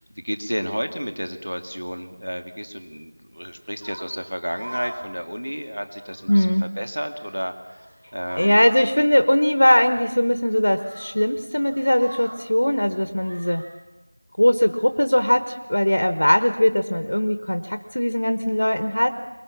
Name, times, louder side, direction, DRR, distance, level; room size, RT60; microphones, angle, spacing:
voice 1, 0.0-7.9 8.1-8.6, equal, 80° right, 7 dB, 2.1 m, -31 dB
sound 1, 3.8-4.1 4.5-5.1 5.4-5.6 6.0-6.4 6.9-7.4 7.8-7.9 8.2-8.8 9.9-10.1 10.7-11.1 11.5-12.4 13.2-13.6, right 1 dB, 55° right, 7.0 m, -41 dB
voice 2, 6.3-6.7 8.4-13.6 14.4-19.1, left 1 dB, 55° left, 9 dB, 1.1 m, -20 dB
22.5 x 21.0 x 7.2 m, 1.1 s
figure-of-eight pair, 175°, 0 cm